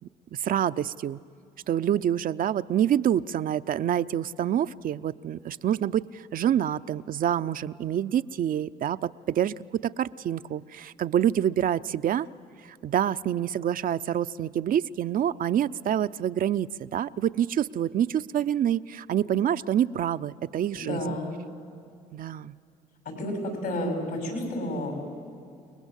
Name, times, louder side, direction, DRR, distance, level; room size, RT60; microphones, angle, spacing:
voice 1, 0.3-1.2 1.7-12.3 12.8-21.0 22.1-22.5, right 10 dB, 55° right, 12 dB, 0.6 m, -27 dB
voice 2, 20.7-21.3 23.0-25.0, left 1 dB, 75° left, 3 dB, 7.0 m, -31 dB
29.5 x 20.0 x 8.2 m, 2.4 s
supercardioid pair, 70°, 17 cm